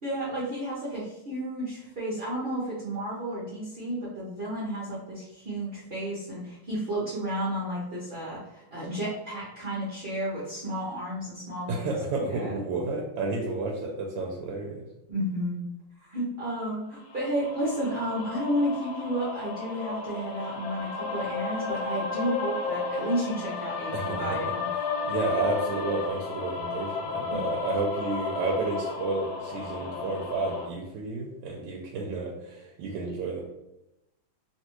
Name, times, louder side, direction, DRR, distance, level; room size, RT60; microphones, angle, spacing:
voice 1, 0.0-11.9 12.2-12.6 15.1-15.6 16.1-24.7, right 1 dB, 55° right, -8 dB, 0.6 m, -32 dB
voice 2, 11.7-14.8 23.9-24.5 25.0-33.4, right 3 dB, 75° right, -1 dB, 1.2 m, -31 dB
sound 1, 17.1-30.7, left 4 dB, 85° left, 1.4 m, -33 dB
3.3 x 2.7 x 3.0 m, 0.91 s
omnidirectional pair, 2.2 m